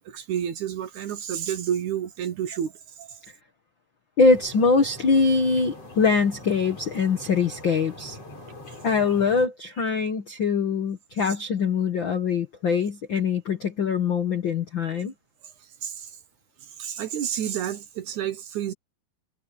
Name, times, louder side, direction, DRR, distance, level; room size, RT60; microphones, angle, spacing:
voice 1, 0.1-2.7 3.0-3.2 15.8-16.1 16.8-18.7, right 9 dB, 65° right, 2.1 m, -30 dB
voice 2, 4.2-8.2 8.8-15.1, left 4 dB, 80° left, 1.0 m, -23 dB
sound 1, 4.2-9.5, left 2 dB, 40° left, 8.1 m, -43 dB
omnidirectional pair, 4.4 m